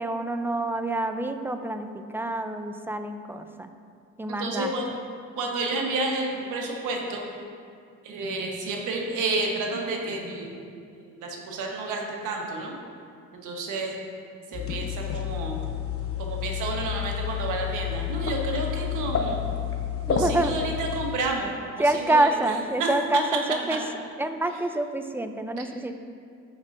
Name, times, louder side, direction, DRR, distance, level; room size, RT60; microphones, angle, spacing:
voice 1, 0.0-3.7 4.2-5.0 20.0-20.5 21.8-23.8 24.2-26.0, right 2 dB, 5° right, 7 dB, 0.5 m, -27 dB
voice 2, 4.3-4.9 5.4-7.3 8.0-10.6 11.0-12.8 13.4-14.0 14.5-15.5 16.2-19.4 20.1-21.5 21.9-22.3 22.8-22.9 23.7-23.8, right 2 dB, 90° right, 0 dB, 1.3 m, -30 dB
sound 1, 14.5-21.2, left 8 dB, 50° left, 0.9 m, -30 dB
14.0 x 5.3 x 2.6 m, 2.3 s
cardioid pair, 90°, 30 cm